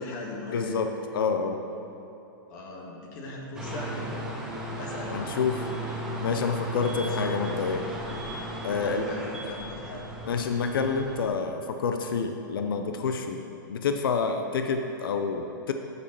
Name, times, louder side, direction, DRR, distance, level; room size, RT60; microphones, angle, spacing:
voice 1, 0.0-0.8 2.5-4.3 4.8-5.2 7.0-7.3 8.8-10.0, left 2 dB, 55° left, 0 dB, 1.9 m, -38 dB
voice 2, 0.5-1.6 5.1-5.7 6.2-7.9 8.6-9.1 10.3-15.7, left 5 dB, 85° left, 6 dB, 0.7 m, -28 dB
sound 1, 3.5-11.2, right 1 dB, 5° right, 1.6 m, -35 dB
7.3 x 6.9 x 6.8 m, 2.9 s
hypercardioid pair, 135°, 11 cm